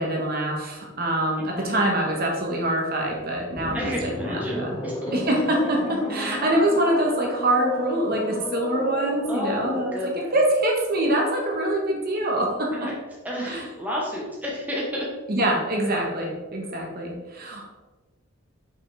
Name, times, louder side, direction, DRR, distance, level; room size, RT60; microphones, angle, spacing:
voice 1, 0.0-3.9 4.2-4.7 5.1-12.7 13.5-13.6 15.3-17.6, right 1 dB, 45° right, 0 dB, 1.3 m, -24 dB
voice 2, 1.4-1.9 2.1-2.2 3.7-5.1 5.4-5.7 9.3-10.4 12.7-12.9 13.2-15.1, left 1 dB, 10° right, -4 dB, 1.1 m, -31 dB
sound 1, 3.6-10.0, left 2 dB, 20° left, 0.3 m, -34 dB
5.9 x 5.6 x 3.4 m, 1.2 s
head